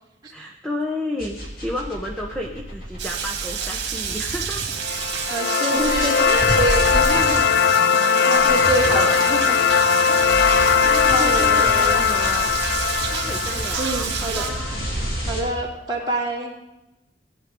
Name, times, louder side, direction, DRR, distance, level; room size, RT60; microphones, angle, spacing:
voice 1, 0.3-4.6 8.9-9.2 10.6-12.5 13.1-15.0, left 1 dB, 5° left, 0 dB, 1.0 m, -32 dB
sound 1, 1.2-5.2 5.7-15.4, equal, 50° left, 2.9 m, -31 dB
Rain, 3.0-14.5, right 7 dB, 65° right, 2.1 m, -29 dB
sound 2, 4.8-14.9, left 6 dB, 70° left, 0.4 m, -20 dB
voice 2, 5.3-7.7 8.3-9.6 10.1-10.3 11.0-12.0 13.8-14.5 15.3-16.5, right 2 dB, 20° right, -7 dB, 3.1 m, -27 dB
17.0 x 10.5 x 3.8 m, 0.96 s
head